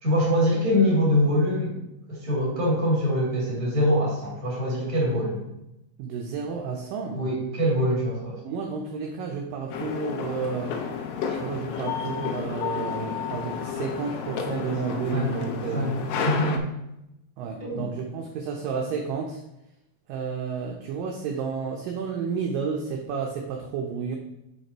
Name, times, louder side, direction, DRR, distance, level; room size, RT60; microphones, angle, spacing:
voice 1, 0.0-1.8 2.1-5.4 7.1-8.4 11.3-11.4 14.5-14.6 15.1-15.3 15.7-16.6 17.6-17.9, equal, 15° right, -5 dB, 2.0 m, -24 dB
voice 2, 6.0-7.2 8.4-10.8 11.3-16.0 17.4-19.4 20.1-24.2, right 5 dB, 80° right, 2 dB, 2.0 m, -31 dB
sound 1, 9.7-16.6, left 6 dB, 80° left, 2.5 m, -31 dB
5.9 x 5.5 x 4.3 m, 0.88 s
omnidirectional pair, 4.5 m